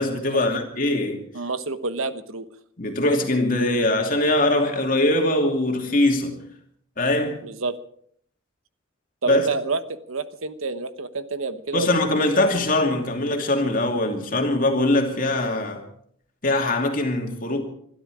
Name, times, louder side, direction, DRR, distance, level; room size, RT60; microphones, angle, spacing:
voice 1, 0.0-1.2 2.8-6.4 7.0-7.4 9.3-9.5 11.7-15.8 16.4-17.6, left 1 dB, 40° left, 2.8 m, -22 dB
voice 2, 1.3-2.5 7.4-7.7 9.2-12.0, right 3 dB, 80° right, 1.1 m, -28 dB
22.0 x 13.0 x 4.9 m
head